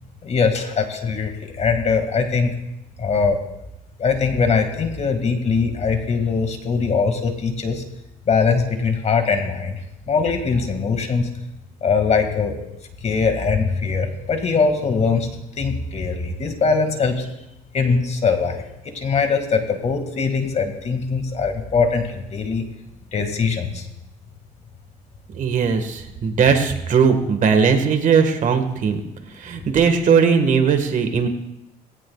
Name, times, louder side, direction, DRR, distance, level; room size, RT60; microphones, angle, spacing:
voice 1, 0.2-2.5 3.0-3.4 4.0-7.8 8.3-9.8 10.1-11.3 11.8-12.6 13.0-15.3 15.6-17.3 17.7-18.6 18.9-22.6 23.1-23.8, left 5 dB, 40° left, 5 dB, 2.2 m, -21 dB
voice 2, 25.3-29.0 29.4-31.3, right 6 dB, 50° right, 6 dB, 1.7 m, -18 dB
20.0 x 16.5 x 2.4 m, 0.89 s
cardioid pair, 110°, 17 cm